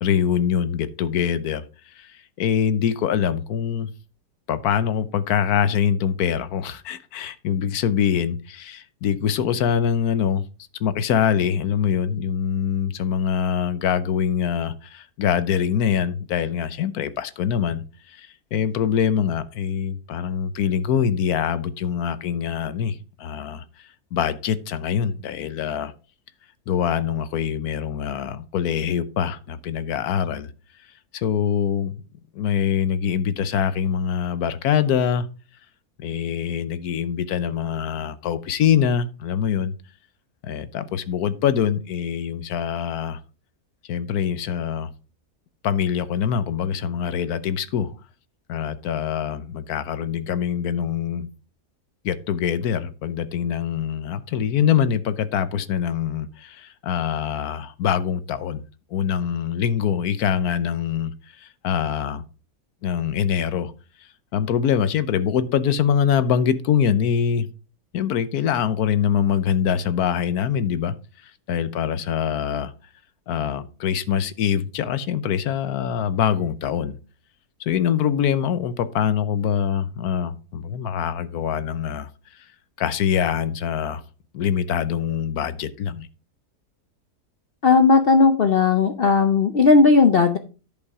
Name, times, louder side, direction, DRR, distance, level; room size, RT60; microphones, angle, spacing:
voice 1, 0.0-3.9 4.5-10.5 10.8-25.9 26.7-30.5 31.1-32.0 32.3-35.3 36.0-39.7 40.4-43.2 43.8-44.9 45.6-47.9 48.5-51.3 52.0-58.6 58.9-62.2 62.8-63.7 64.3-67.5 67.9-72.7 73.3-77.0 77.6-82.1 82.4-82.5 82.8-84.0 84.3-86.1, left 8 dB, 70° left, 14 dB, 1.2 m, -24 dB
voice 2, 87.6-90.4, left 4 dB, 50° left, 8 dB, 0.7 m, -16 dB
10.5 x 5.4 x 4.8 m, 0.34 s
omnidirectional pair, 1.7 m